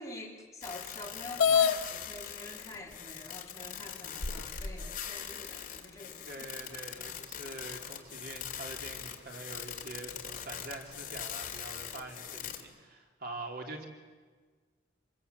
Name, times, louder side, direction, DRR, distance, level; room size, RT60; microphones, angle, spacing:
voice 1, 0.0-7.1, left 2 dB, 20° left, 0 dB, 3.3 m, -47 dB
sound 1, 0.6-12.6, left 9 dB, 45° left, 2.6 m, -42 dB
sound 2, 1.4-1.8 2.8-2.9 3.5-3.6 4.2-4.9, left 7 dB, 90° left, 1.3 m, -26 dB
voice 2, 6.3-13.9, right 2 dB, 55° right, 2 dB, 3.2 m, -44 dB
26.0 x 22.0 x 8.2 m, 1.5 s
head